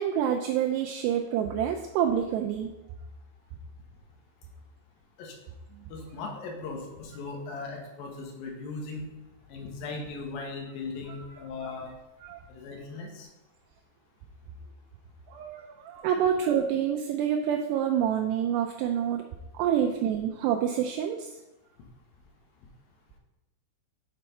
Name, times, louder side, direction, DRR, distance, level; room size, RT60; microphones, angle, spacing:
voice 1, 0.0-2.7 11.1-11.2 11.6-11.7 12.2-12.4 15.3-19.2 19.6-21.3, right 9 dB, 85° right, 3 dB, 2.4 m, -27 dB
voice 2, 5.9-9.1 9.5-11.9 12.5-13.3, left 3 dB, 70° left, 1 dB, 2.5 m, -38 dB
7.9 x 4.4 x 5.3 m, 0.97 s
omnidirectional pair, 5.3 m